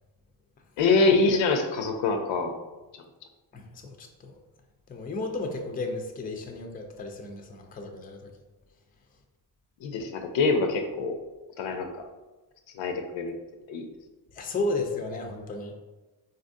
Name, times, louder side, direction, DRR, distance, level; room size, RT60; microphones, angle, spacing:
voice 1, 0.8-2.5 9.8-11.2 11.6-11.9 12.7-13.4 13.7-13.9, left 3 dB, 75° left, 5 dB, 0.6 m, -24 dB
voice 2, 3.5-4.3 4.9-8.3 14.3-15.7, left 2 dB, 20° left, 4 dB, 0.4 m, -33 dB
4.0 x 2.5 x 2.6 m, 1.1 s
cardioid pair, 85°, 46 cm